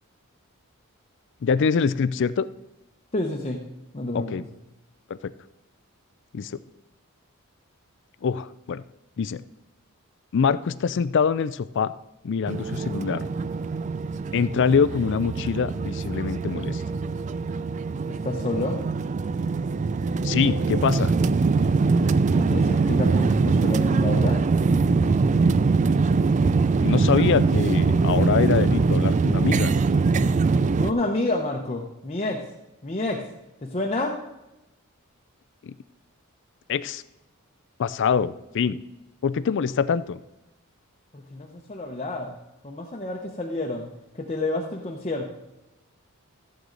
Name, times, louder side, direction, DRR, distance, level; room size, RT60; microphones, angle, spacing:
voice 1, 1.4-2.5 4.1-4.4 5.1-5.3 6.3-6.6 8.2-8.8 9.2-9.4 10.3-11.9 12.2-13.2 14.3-16.8 20.2-21.1 26.8-29.7 35.6-35.7 36.7-37.0 37.8-38.8 39.2-40.2, left 6 dB, 55° left, 15 dB, 0.4 m, -24 dB
voice 2, 3.1-3.6 3.9-4.5 18.1-18.8 22.3-24.4 30.8-32.5 32.8-33.3 33.6-34.2 41.1-42.4 42.6-45.3, left 2 dB, 30° left, -1 dB, 0.9 m, -29 dB
sound 1, 12.5-30.9, right 4 dB, 35° right, 0.3 m, -22 dB
14.5 x 7.8 x 3.9 m, 0.95 s
head